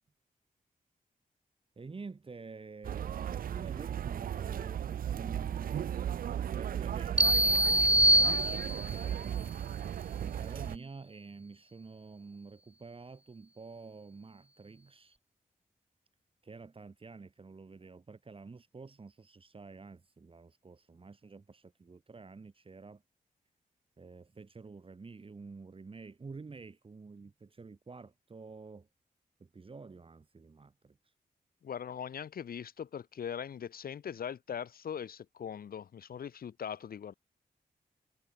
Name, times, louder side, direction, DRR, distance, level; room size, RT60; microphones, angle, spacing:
voice 1, 1.8-5.9 6.5-9.7 10.2-15.2 16.4-23.0 24.0-28.9 29.4-31.0, right 4 dB, 35° right, 5.3 m, -49 dB
sound 1, 2.8-10.8, right 9 dB, 75° right, 0.4 m, -36 dB
sound 2, 7.2-9.0, right 1 dB, 10° right, 1.0 m, -24 dB
voice 2, 31.6-37.1, left 8 dB, 85° left, 1.6 m, -40 dB
wide cardioid pair, 130°, 15 cm